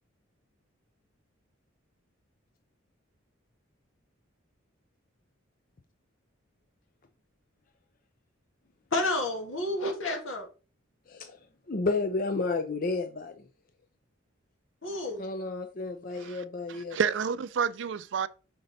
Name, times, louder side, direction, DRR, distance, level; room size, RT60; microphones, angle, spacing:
voice 1, 8.9-10.5 14.8-15.3, left 2 dB, 75° left, 1.8 m, -30 dB
voice 2, 11.1-11.4 11.7-13.4 15.2-17.0, left 3 dB, 45° left, 0.5 m, -31 dB
voice 3, 16.7-18.3, right 7 dB, 60° right, 0.4 m, -30 dB
5.5 x 5.2 x 4.0 m
head